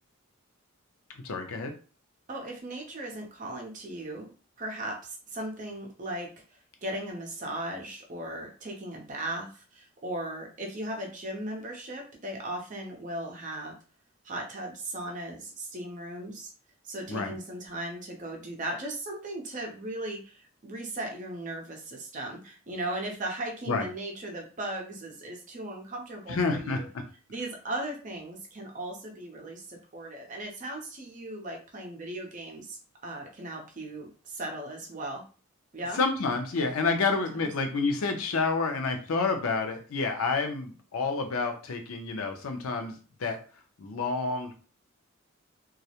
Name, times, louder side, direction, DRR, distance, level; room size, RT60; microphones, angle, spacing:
voice 1, 1.2-1.7 17.1-17.3 23.7-23.9 26.3-27.0 35.9-43.4 43.8-44.5, left 4 dB, 85° left, 5 dB, 0.5 m, -29 dB
voice 2, 2.3-4.3 4.6-6.3 6.8-13.7 14.2-16.5 16.8-26.9 27.3-35.2 35.7-36.0 37.1-37.2, right 1 dB, 35° right, 1 dB, 0.6 m, -37 dB
2.3 x 2.0 x 2.8 m, 0.37 s
head